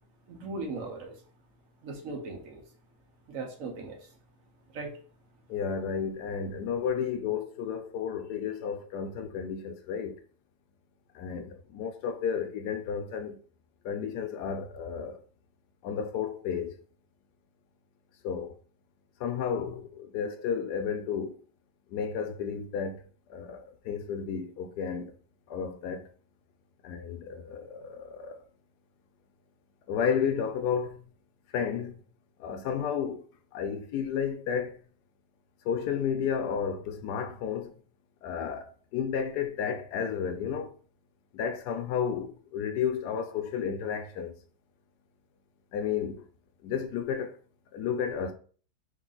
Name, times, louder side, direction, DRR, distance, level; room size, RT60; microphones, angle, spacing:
voice 1, 0.3-1.2 1.8-2.6 3.3-4.1 4.7-4.9, right 3 dB, 60° right, 1.1 m, -38 dB
voice 2, 5.5-10.2 11.1-13.4 13.8-15.2 15.8-16.8 18.2-18.6 19.2-21.4 21.9-25.1 25.5-26.1 26.8-28.4 29.9-31.1 31.5-32.0 32.4-33.2 33.5-34.8 35.6-37.8 38.2-40.7 41.3-44.4 45.7-46.2 46.6-47.4 47.7-48.3, left 7 dB, 85° left, 1.2 m, -32 dB
3.9 x 2.5 x 3.8 m
omnidirectional pair, 1.7 m